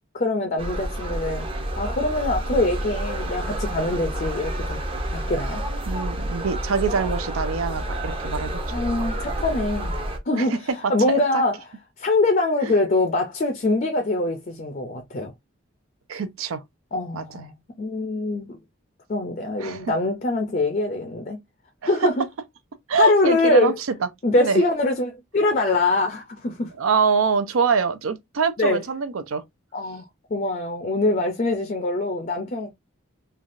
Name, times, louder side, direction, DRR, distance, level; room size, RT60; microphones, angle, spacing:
voice 1, 0.1-1.5 1.8-4.8 5.1-5.6 8.7-10.0 10.3-10.5 10.9-11.5 12.0-15.3 16.9-18.6 19.1-21.4 21.9-22.2 23.0-23.7 24.2-26.7 28.6-28.8 29.7-30.0 30.3-32.7, left 2 dB, 40° left, 0.4 m, -23 dB
sound 1, 0.6-10.2, right 1 dB, 25° right, 0.5 m, -29 dB
voice 2, 5.8-8.6 10.3-10.6 10.8-11.2 12.6-12.7 16.1-16.6 17.1-17.4 19.6-19.9 21.8-22.1 22.9-23.7 24.0-24.1 24.4-24.6 26.8-29.4, right 5 dB, 85° right, 0.5 m, -24 dB
3.3 x 2.3 x 2.5 m
head